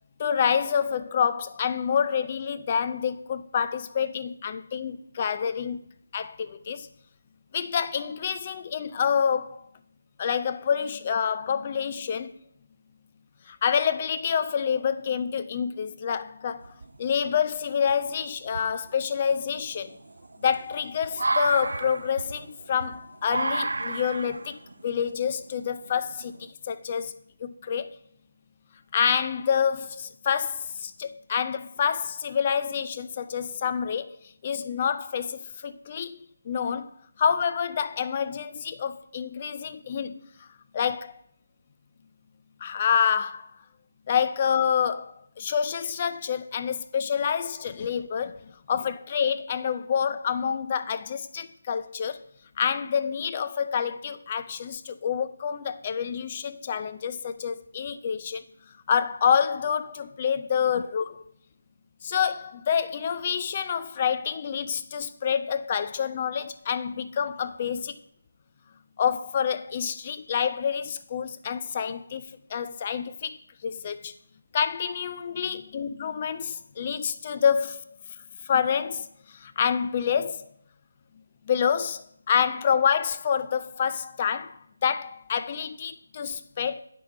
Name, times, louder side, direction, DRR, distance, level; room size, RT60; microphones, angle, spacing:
voice 1, 0.2-5.8 6.1-6.9 7.5-9.7 10.2-12.3 13.5-16.7 17.0-20.0 20.4-27.9 28.9-34.2 34.4-36.9 37.2-40.2 40.7-41.2 42.6-43.5 44.1-52.2 52.6-58.4 58.9-61.2 62.0-67.9 69.0-72.2 72.5-74.1 74.5-77.8 78.4-80.5 81.5-86.8, left 7 dB, 25° left, 0.4 m, -27 dB
sound 1, 16.6-17.2 17.9-18.0 18.5-26.5, right 2 dB, 75° right, 0.5 m, -32 dB
9.4 x 3.8 x 5.0 m
figure-of-eight pair, 170°, 0 cm